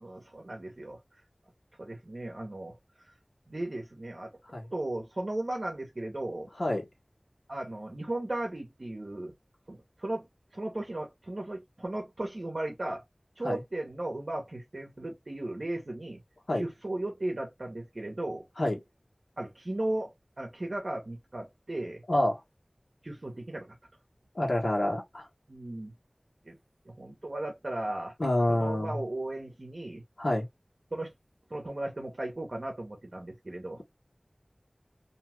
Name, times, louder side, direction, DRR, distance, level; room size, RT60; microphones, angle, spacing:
voice 1, 0.0-1.0 1.8-3.1 3.5-4.3 4.7-6.5 7.5-9.3 9.7-10.3 10.5-13.0 13.4-16.2 16.5-18.5 19.4-22.0 23.0-23.7 25.5-25.9 26.4-26.6 26.9-28.1 28.5-30.0 30.9-31.1 31.5-33.8, right 1 dB, 65° right, 0.8 m, -36 dB
voice 2, 22.1-22.4 24.3-25.2 28.2-28.9 30.2-30.5, left 1 dB, 70° left, 1.2 m, -27 dB
2.7 x 2.3 x 3.1 m
wide cardioid pair, 45°, 0 cm